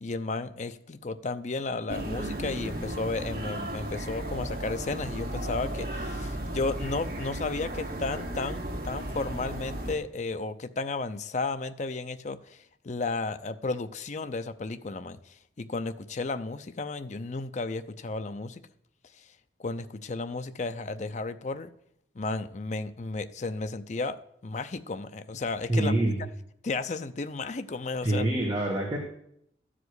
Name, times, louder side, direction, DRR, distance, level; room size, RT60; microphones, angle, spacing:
voice 1, 0.0-18.6 19.2-19.3 19.6-21.7 22.2-25.9 26.6-28.3, left 3 dB, 40° left, 0.5 m, -33 dB
sound 1, 1.9-10.0, right 1 dB, 55° right, 1.8 m, -35 dB
voice 2, 25.7-26.2 28.0-29.0, right 1 dB, 20° right, 1.7 m, -26 dB
13.0 x 5.0 x 8.0 m
head